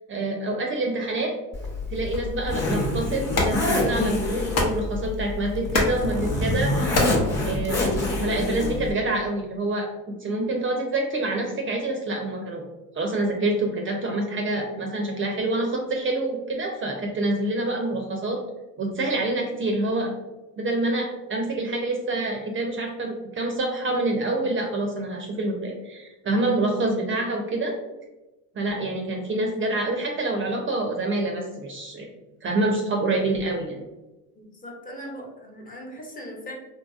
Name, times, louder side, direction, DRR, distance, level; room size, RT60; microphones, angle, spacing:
voice 1, 0.1-1.3 1.9-7.0 7.4-7.9 8.2-12.6 12.9-18.4 18.8-20.1 20.6-27.8 28.6-32.1 32.4-33.8, right 2 dB, 30° right, 2 dB, 0.5 m, -26 dB
Zipper (clothing), 1.5-8.9, left 2 dB, 35° left, 1.0 m, -27 dB
sound 1, 2.1-8.2, left 2 dB, 80° left, 0.9 m, -30 dB
voice 2, 34.4-36.5, equal, 20° left, -1 dB, 0.7 m, -39 dB
2.8 x 2.7 x 2.3 m, 1.0 s
supercardioid pair, 90°, 41 cm